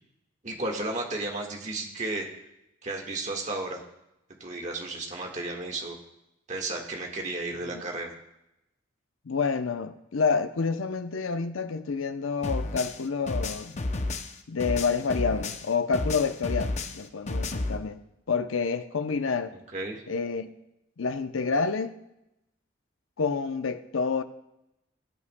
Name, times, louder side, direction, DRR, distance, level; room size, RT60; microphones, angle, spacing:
voice 1, 0.4-2.2 2.8-3.8 4.4-6.0 6.5-8.1 19.5-20.0, right 2 dB, 35° right, 1.5 m, -33 dB
voice 2, 9.3-13.8 14.5-18.0 18.3-19.5 20.1-20.5 21.0-22.0 23.2-24.2, left 5 dB, 85° left, 0.7 m, -28 dB
sound 1, 12.4-15.7 15.9-17.8, left 2 dB, 35° left, 0.6 m, -31 dB
20.5 x 8.5 x 2.2 m
head